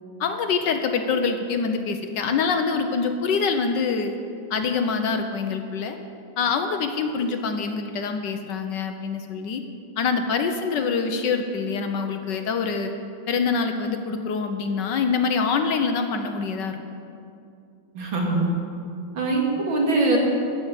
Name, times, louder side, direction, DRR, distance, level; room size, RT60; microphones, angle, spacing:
voice 1, 0.2-4.1 4.5-6.0 6.4-9.6 10.0-12.9 13.3-16.8, left 5 dB, 70° left, 6 dB, 1.3 m, -25 dB
voice 2, 17.9-18.5 19.1-20.2, right 2 dB, 70° right, -1 dB, 2.6 m, -22 dB
13.5 x 6.0 x 8.2 m, 2.4 s
omnidirectional pair, 2.2 m